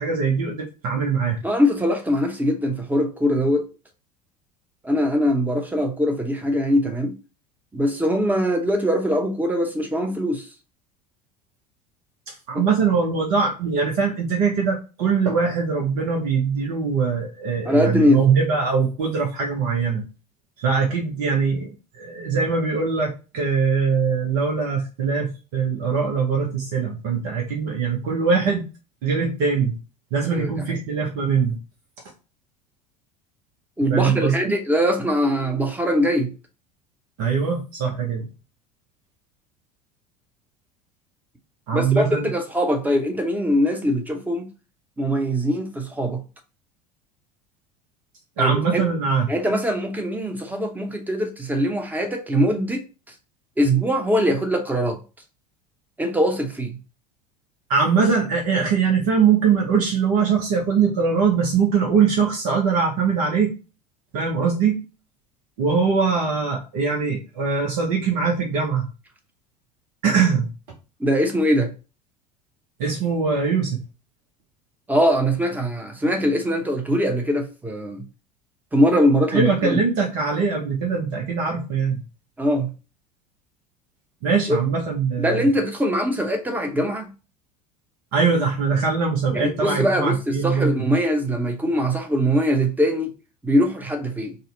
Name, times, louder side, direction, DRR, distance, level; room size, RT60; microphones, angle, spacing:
voice 1, 0.0-1.4 12.3-20.0 20.6-28.7 29.0-29.8 30.1-31.6 33.9-34.5 37.2-38.3 41.7-42.3 48.4-49.3 57.7-63.5 64.1-64.8 65.6-68.9 70.0-70.5 72.8-73.8 79.3-82.0 84.2-85.5 88.1-90.7, right 5 dB, 55° right, 1.0 m, -22 dB
voice 2, 1.4-3.7 4.8-7.1 7.7-10.5 12.5-12.6 17.7-18.2 30.3-30.8 33.8-36.3 41.7-44.5 45.0-46.2 48.4-48.8 49.3-52.8 53.6-55.0 56.0-56.8 71.0-71.7 74.9-78.0 78.7-79.8 82.4-82.7 84.5-84.6 85.2-87.1 89.3-93.1 93.4-94.4, equal, 10° right, 0.9 m, -22 dB
4.1 x 2.2 x 3.9 m
figure-of-eight pair, 70°, 21 cm